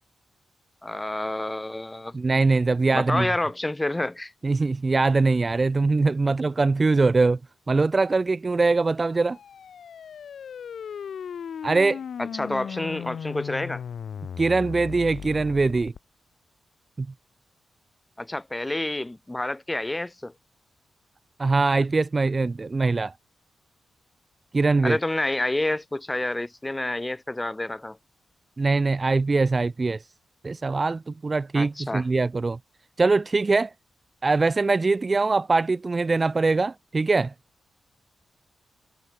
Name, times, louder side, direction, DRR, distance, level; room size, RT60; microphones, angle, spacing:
voice 1, 0.8-2.2 2.9-4.3 12.2-13.8 18.2-20.3 24.8-28.0 31.5-32.1, left 1 dB, 10° left, 5.3 m, -28 dB
voice 2, 2.1-3.3 4.4-7.4 7.7-9.4 11.6-12.0 14.4-15.9 17.0-17.1 21.4-23.1 24.5-25.0 28.6-30.0 30.4-32.6 33.0-33.7 34.2-37.3, right 3 dB, 25° right, 0.4 m, -22 dB
sound 1, 9.1-16.0, left 7 dB, 65° left, 2.9 m, -37 dB
wide cardioid pair, 150°, 0 cm